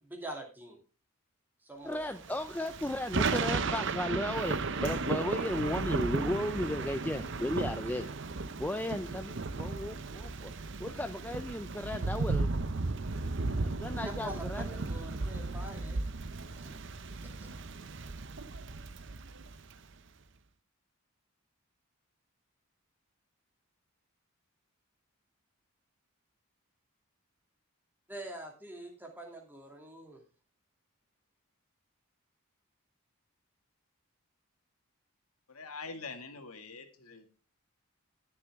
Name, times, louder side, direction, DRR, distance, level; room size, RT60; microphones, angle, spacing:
voice 1, 0.0-0.8 1.6-2.1 14.0-16.0 16.6-16.7 17.2-17.5 28.1-30.2, right 1 dB, 10° right, 0 dB, 2.5 m, -45 dB
voice 2, 1.8-8.3 8.6-12.5 13.6-14.6, left 1 dB, 10° left, 8 dB, 0.4 m, -35 dB
Thunder / Rain, 2.2-19.8, right 3 dB, 55° right, 0.7 m, -35 dB
voice 3, 35.5-37.2, left 4 dB, 80° left, 6 dB, 2.0 m, -44 dB
19.0 x 6.8 x 3.6 m, 0.33 s
head